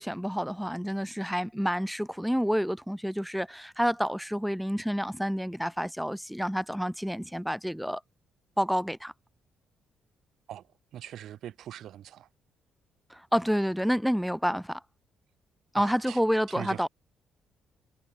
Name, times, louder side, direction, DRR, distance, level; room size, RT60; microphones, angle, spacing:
voice 1, 0.0-8.0 8.6-9.1 13.1-14.8 15.7-16.9, equal, ahead, 0.4 m, -29 dB
voice 2, 10.9-12.3 15.7-16.2 16.6-16.9, right 11 dB, 75° right, 0.5 m, -41 dB
cardioid pair, 90°, 0 cm